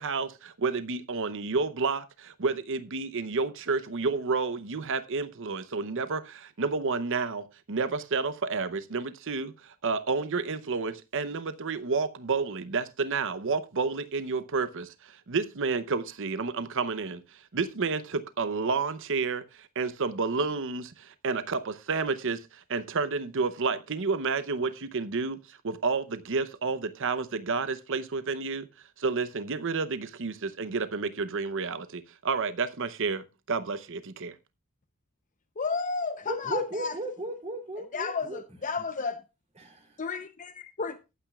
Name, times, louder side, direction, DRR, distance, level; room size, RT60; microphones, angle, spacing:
voice 1, 0.0-28.7 29.0-34.4, right 4 dB, 60° right, 0.8 m, -30 dB
voice 2, 35.6-36.9 37.9-39.2 40.0-40.5 40.8-40.9, left 4 dB, 35° left, 0.7 m, -32 dB
voice 3, 36.3-38.4 39.6-40.0, right 1 dB, 30° right, 3.2 m, -35 dB
18.0 x 9.1 x 2.4 m
head